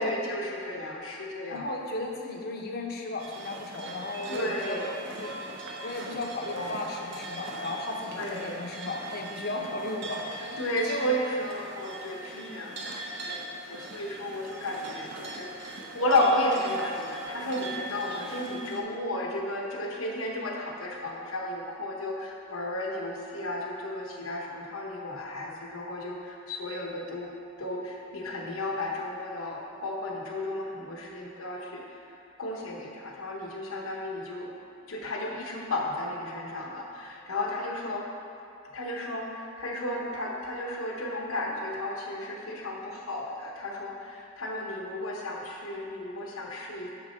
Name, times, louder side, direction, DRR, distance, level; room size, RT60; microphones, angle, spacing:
voice 1, 0.0-1.7 4.3-4.9 8.2-8.6 10.6-27.3 27.6-31.8 32.4-34.5 34.9-38.1 38.7-46.9, left 1 dB, 80° left, -1 dB, 1.0 m, -33 dB
voice 2, 1.5-5.4 5.8-11.1 12.3-12.8 13.6-13.8, left 2 dB, 45° left, 1 dB, 0.7 m, -35 dB
sound 1, 3.2-18.8, right 1 dB, 60° right, 0.8 m, -40 dB
6.0 x 6.0 x 4.3 m, 2.7 s
head